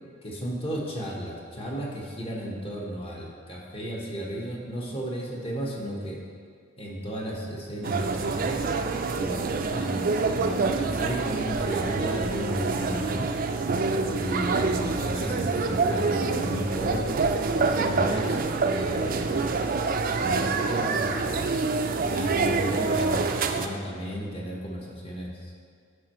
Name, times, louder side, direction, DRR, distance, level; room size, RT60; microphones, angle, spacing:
voice 1, 0.2-6.2 6.8-8.6 9.1-13.3 14.0-17.1 17.5-18.4 18.7-19.6 20.0-21.4 22.0-25.3, equal, 30° left, -2 dB, 1.2 m, -34 dB
sound 1, 7.8-23.7, right 4 dB, 45° right, 0.4 m, -26 dB
11.0 x 5.4 x 3.1 m, 2.2 s
head